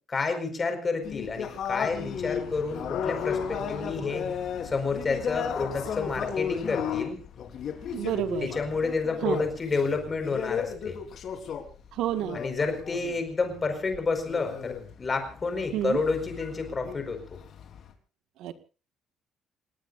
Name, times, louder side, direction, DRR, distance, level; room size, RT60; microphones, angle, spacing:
voice 1, 0.1-4.3 4.6-7.2 8.4-11.0 12.3-17.4, left 4 dB, 20° left, 6 dB, 5.0 m, -30 dB
sound 1, 1.0-13.2 13.4-17.9, left 7 dB, 50° left, 4.0 m, -35 dB
sound 2, 1.8-7.0, left 9 dB, 90° left, 6.4 m, -40 dB
voice 2, 7.9-8.5 9.2-9.4 11.9-12.4 15.7-16.0 18.4-18.5, right 12 dB, 85° right, 9 dB, 1.8 m, -29 dB
30.0 x 17.5 x 2.6 m, 0.37 s
cardioid pair, 175°, 0 cm